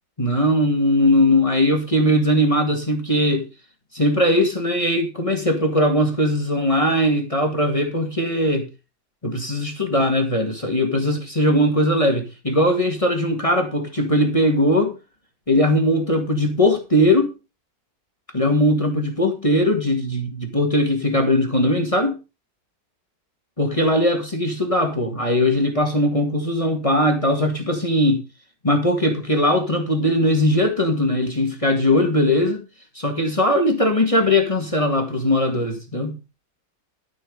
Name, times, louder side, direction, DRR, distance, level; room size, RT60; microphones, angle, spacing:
voice 1, 0.2-3.5 3.9-8.7 9.2-14.9 15.5-17.3 18.3-22.2 23.6-28.2 28.6-32.6 32.9-36.2, left 1 dB, 20° left, 2.1 m, -20 dB
13.0 x 6.3 x 5.4 m
omnidirectional pair, 1.7 m